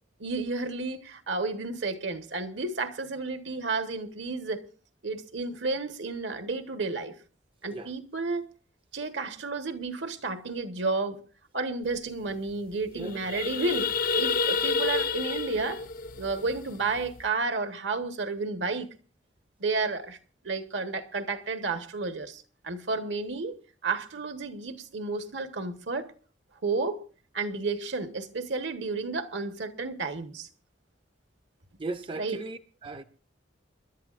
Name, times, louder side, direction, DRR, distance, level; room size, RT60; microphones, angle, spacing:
voice 1, 0.2-4.6 5.0-7.1 7.6-8.5 8.9-11.2 11.5-15.8 16.2-18.9 19.6-20.2 20.4-23.6 23.8-26.1 26.6-27.0 27.3-30.5 32.2-32.4, right 3 dB, 70° right, 1.3 m, -31 dB
sound 1, 12.0-12.1 12.3-12.5 12.9-17.2, left 4 dB, 50° left, 0.6 m, -29 dB
voice 2, 31.8-33.0, right 2 dB, 30° right, 0.6 m, -37 dB
28.5 x 11.0 x 2.5 m
head